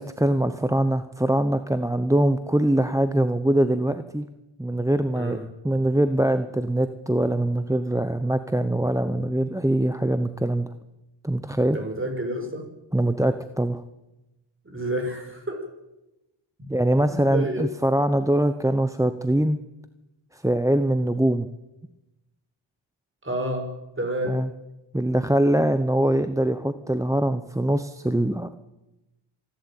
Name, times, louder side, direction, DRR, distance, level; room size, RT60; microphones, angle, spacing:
voice 1, 0.0-4.3 4.6-5.4 5.6-10.7 11.2-11.8 12.9-13.8 16.7-19.6 20.3-21.5 24.3-24.5 24.9-28.5, right 1 dB, 5° right, 10 dB, 0.9 m, -23 dB
voice 2, 11.7-12.7 14.6-15.6 16.6-16.7 17.1-17.6 23.2-23.7 24.0-24.4, right 1 dB, 25° right, 4 dB, 6.2 m, -29 dB
25.5 x 12.0 x 9.1 m, 0.98 s
wide cardioid pair, 85°, 49 cm